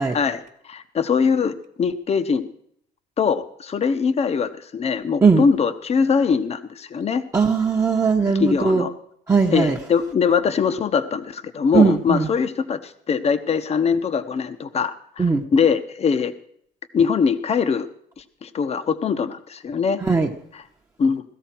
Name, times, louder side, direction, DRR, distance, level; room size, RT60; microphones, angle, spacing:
voice 1, 0.1-2.5 3.2-7.2 8.4-8.9 9.5-15.2 15.5-16.3 16.9-17.9 18.2-20.0 21.0-21.2, left 6 dB, 40° left, 11 dB, 1.0 m, -22 dB
voice 2, 7.3-8.9 9.3-9.8 11.7-12.3 15.2-15.4 20.0-20.3, right 4 dB, 15° right, 0 dB, 1.0 m, -18 dB
17.5 x 13.5 x 4.6 m, 0.71 s
cardioid pair, 110°, 17 cm